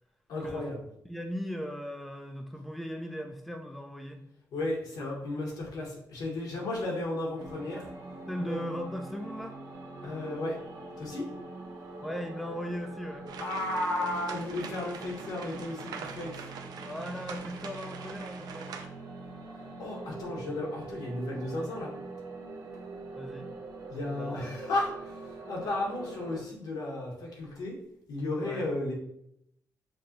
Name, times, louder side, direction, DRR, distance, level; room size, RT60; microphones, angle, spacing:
voice 1, 0.3-0.8 4.5-7.9 8.4-8.6 10.0-10.6 10.9-11.3 13.4-16.4 19.8-21.9 23.9-27.7 28.1-28.9, left 2 dB, 90° left, -2 dB, 1.5 m, -34 dB
voice 2, 1.0-4.2 8.3-9.6 12.0-13.3 16.8-18.7 23.1-23.5 24.1-24.4 28.4-28.7, equal, ahead, 4 dB, 0.4 m, -38 dB
sound 1, 7.4-26.4, right 2 dB, 60° right, 0.9 m, -44 dB
sound 2, 13.3-18.9, right 6 dB, 85° right, 0.5 m, -44 dB
6.3 x 2.4 x 2.9 m, 0.75 s
cardioid pair, 125°, 7 cm